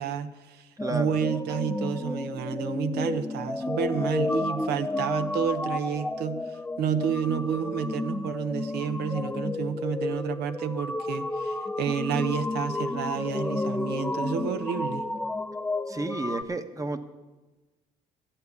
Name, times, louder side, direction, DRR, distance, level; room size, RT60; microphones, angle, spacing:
voice 1, 0.0-15.0, right 7 dB, 75° right, 11 dB, 0.8 m, -30 dB
sound 1, 0.8-16.4, left 2 dB, 10° left, 0.6 m, -31 dB
voice 2, 0.8-1.2 15.9-17.0, right 2 dB, 20° right, 9 dB, 1.0 m, -31 dB
13.5 x 8.3 x 8.3 m, 1.2 s
cardioid pair, 110°, 17 cm